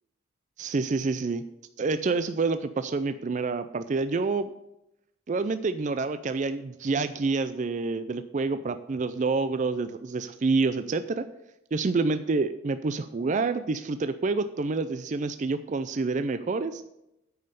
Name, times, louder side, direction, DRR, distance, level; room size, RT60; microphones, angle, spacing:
voice 1, 0.6-1.4 1.8-4.5 5.3-11.3 11.7-16.8, right 3 dB, 40° right, 11 dB, 0.4 m, -28 dB
9.3 x 5.5 x 6.7 m, 0.86 s
head